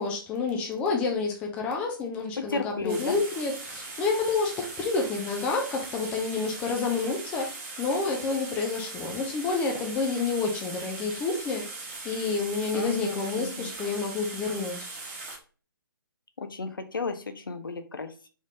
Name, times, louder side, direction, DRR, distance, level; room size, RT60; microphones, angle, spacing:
voice 1, 0.0-14.9, left 4 dB, 10° left, 1 dB, 0.4 m, -29 dB
voice 2, 2.4-3.2 12.7-13.7 16.4-18.3, left 3 dB, 65° left, 8 dB, 0.6 m, -33 dB
sound 1, 2.9-15.4, right 3 dB, 35° right, 1.1 m, -40 dB
3.6 x 3.5 x 2.7 m, 0.37 s
figure-of-eight pair, 135°, 12 cm